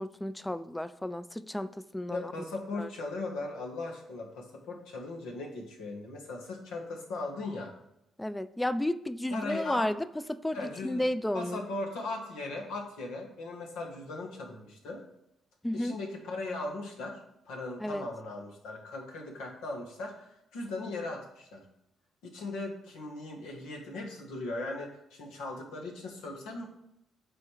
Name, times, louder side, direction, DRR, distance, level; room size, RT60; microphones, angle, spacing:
voice 1, 0.0-2.3 2.7-2.9 8.2-11.6 15.6-16.0 17.8-18.1, left 1 dB, 10° left, 15 dB, 0.5 m, -32 dB
voice 2, 2.1-7.7 9.3-9.9 10.5-11.0 11.3-15.0 15.7-21.6 22.2-26.6, left 2 dB, 80° left, 1 dB, 1.5 m, -38 dB
8.5 x 4.2 x 4.7 m, 0.83 s
hypercardioid pair, 50°, 0 cm